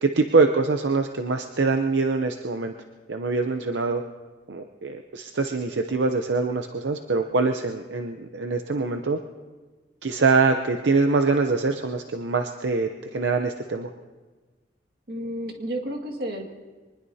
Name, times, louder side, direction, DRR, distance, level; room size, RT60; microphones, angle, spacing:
voice 1, 0.0-2.7 3.1-4.0 4.5-9.2 10.0-13.9, right 3 dB, 80° right, 5 dB, 0.7 m, -24 dB
voice 2, 15.1-16.5, equal, 55° right, 2 dB, 2.0 m, -31 dB
24.0 x 20.0 x 2.8 m, 1.3 s
head